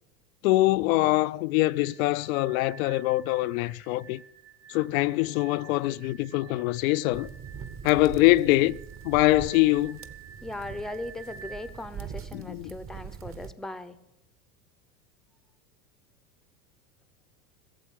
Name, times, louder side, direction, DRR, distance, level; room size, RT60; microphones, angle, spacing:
voice 1, 0.4-4.2 4.7-7.3 7.8-8.8 9.0-10.0 12.3-12.8, left 18 dB, 60° left, 0.6 m, -23 dB
sound 1, 1.6-11.8, right 6 dB, 55° right, 2.2 m, -50 dB
sound 2, 7.1-13.5, right 7 dB, 30° right, 1.0 m, -42 dB
voice 2, 10.4-14.0, left 1 dB, ahead, 0.7 m, -38 dB
16.5 x 7.6 x 7.5 m
hypercardioid pair, 95°, 47 cm